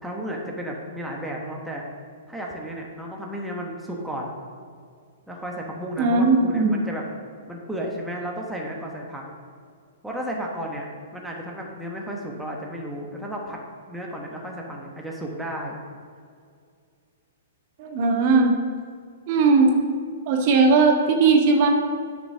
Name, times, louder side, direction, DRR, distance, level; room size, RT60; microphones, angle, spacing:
voice 1, 0.0-1.8 2.3-4.3 5.3-7.0 7.5-9.2 10.0-10.9 11.1-13.6 13.9-15.8, right 1 dB, 5° right, -2 dB, 1.3 m, -33 dB
voice 2, 6.0-6.7 17.8-18.5 19.3-19.7 20.3-21.7, right 4 dB, 45° right, 1 dB, 1.5 m, -18 dB
10.0 x 5.1 x 6.1 m, 2.2 s
figure-of-eight pair, 115°, 0 cm